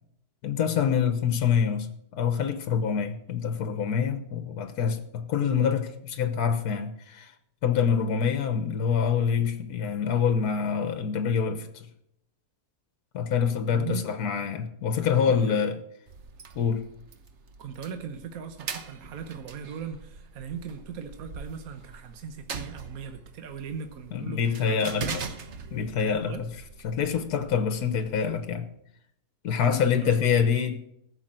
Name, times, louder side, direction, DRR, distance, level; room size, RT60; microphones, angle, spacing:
voice 1, 0.4-7.3 7.6-11.9 13.1-15.8 16.5-16.8 24.1-25.2 25.7-26.3 26.8-28.7 29.4-30.8, left 7 dB, 75° left, 1.5 m, -26 dB
voice 2, 13.7-14.1 15.3-15.6 17.6-25.1 26.3-26.4 29.8-30.3, right 6 dB, 65° right, 1.4 m, -38 dB
sound 1, 16.1-28.5, right 5 dB, 50° right, 1.2 m, -42 dB
15.0 x 6.8 x 7.5 m
omnidirectional pair, 1.6 m